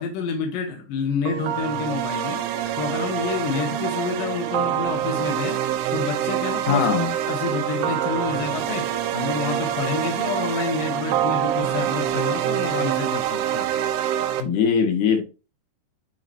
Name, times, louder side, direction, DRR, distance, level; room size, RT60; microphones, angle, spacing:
voice 1, 0.0-6.9 7.3-13.7, left 5 dB, 85° left, 1.9 m, -29 dB
sound 1, 1.3-14.4, right 11 dB, 85° right, 3.1 m, -25 dB
voice 2, 6.7-7.1 14.4-15.2, left 6 dB, 60° left, 2.3 m, -20 dB
9.3 x 3.9 x 2.7 m
omnidirectional pair, 5.5 m